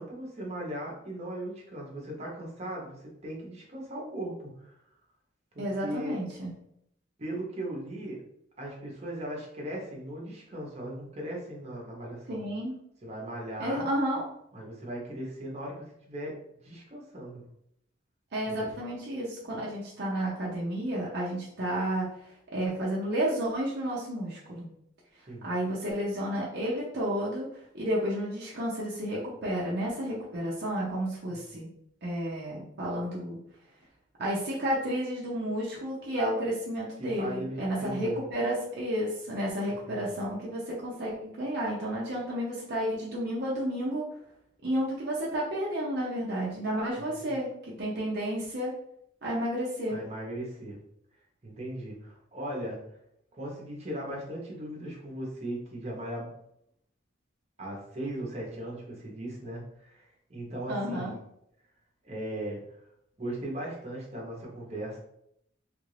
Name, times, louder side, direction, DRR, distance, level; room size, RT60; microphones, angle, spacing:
voice 1, 0.0-4.7 5.5-6.2 7.2-8.2 8.6-12.4 13.0-13.9 14.5-16.3 16.6-17.4 18.5-18.7 25.3-25.5 31.3-31.4 37.0-38.2 39.9-40.2 47.0-47.3 49.9-50.8 51.4-52.8 53.3-56.3 57.6-61.1 62.0-62.6 63.2-65.0, right 1 dB, 35° right, -2 dB, 0.9 m, -38 dB
voice 2, 5.6-6.5 12.3-12.8 13.6-14.2 18.3-22.1 22.5-24.7 25.4-27.5 27.7-31.7 32.0-33.4 34.2-44.0 44.6-48.7 49.2-50.0 60.7-61.1, equal, 55° right, -4 dB, 0.7 m, -31 dB
3.3 x 2.5 x 3.2 m, 0.74 s
head